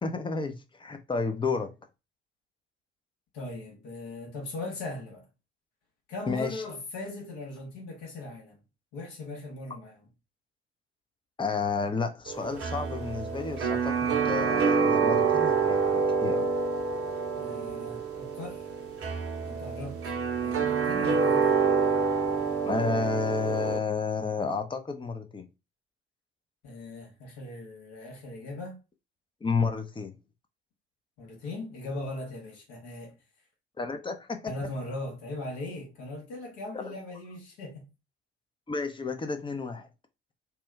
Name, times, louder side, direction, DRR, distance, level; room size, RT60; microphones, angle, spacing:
voice 1, 0.0-1.8 6.3-6.6 11.4-16.5 22.7-25.5 29.4-30.1 33.8-34.5 36.7-36.9 38.7-39.9, left 4 dB, 15° left, 0.6 m, -31 dB
voice 2, 3.3-5.3 6.1-8.6 8.9-10.0 17.3-18.7 19.4-20.1 20.4-21.6 26.6-28.8 31.2-33.1 34.5-37.8, left 2 dB, 65° left, 1.3 m, -39 dB
sound 1, 12.3-23.8, right 5 dB, 45° right, 0.8 m, -27 dB
2.9 x 2.2 x 3.2 m
figure-of-eight pair, 50°, 32 cm